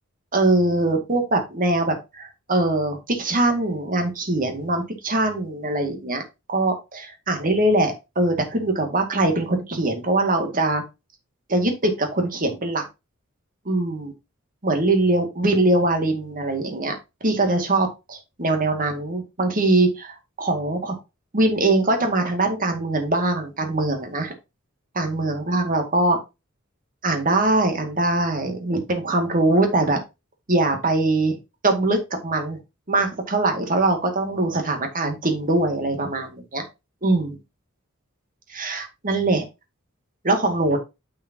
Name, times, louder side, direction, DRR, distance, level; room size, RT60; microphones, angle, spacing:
voice 1, 0.3-6.2 6.5-10.8 11.5-12.8 13.7-14.1 14.6-17.0 17.2-21.0 21.3-24.3 24.9-26.2 27.0-30.0 30.5-31.4 31.6-32.6 32.9-36.7 37.0-37.4 38.5-39.5 40.2-40.8, right 2 dB, 40° right, 5 dB, 2.0 m, -22 dB
9.5 x 5.6 x 2.8 m, 0.24 s
head